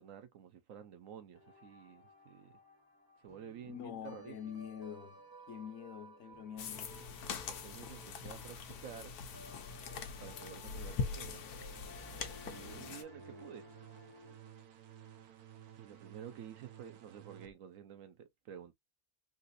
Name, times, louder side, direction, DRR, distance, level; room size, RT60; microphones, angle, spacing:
voice 1, 0.0-2.6 3.2-4.3 7.2-9.2 10.2-11.5 12.4-13.7 14.5-14.6 15.8-18.7, right 9 dB, 65° right, 1.0 m, -51 dB
sound 1, 1.3-14.4, equal, 20° right, 0.7 m, -57 dB
voice 2, 3.6-5.2 5.5-7.0 12.4-13.0, left 8 dB, 65° left, 1.0 m, -46 dB
sound 2, 6.6-13.0, left 5 dB, 85° left, 1.3 m, -42 dB
sound 3, 11.7-17.5, right 8 dB, 90° right, 1.2 m, -55 dB
4.0 x 2.5 x 2.5 m
omnidirectional pair, 1.6 m